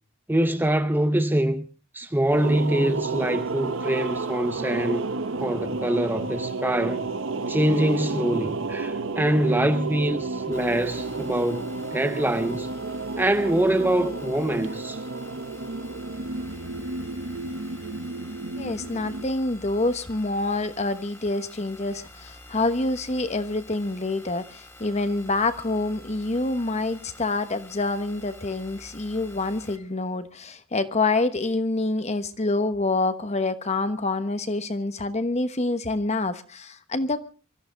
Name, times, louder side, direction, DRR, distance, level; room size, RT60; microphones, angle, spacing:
voice 1, 0.3-1.6 1.9-5.1 5.4-7.1 7.4-12.7 13.2-15.0, right 1 dB, 10° right, 0.7 m, -24 dB
sound 1, 2.3-19.2, right 3 dB, 65° right, 0.9 m, -31 dB
sound 2, 10.5-29.8, left 1 dB, 15° left, 2.2 m, -48 dB
voice 2, 18.6-37.2, left 2 dB, 35° left, 1.2 m, -27 dB
24.0 x 14.0 x 3.9 m
head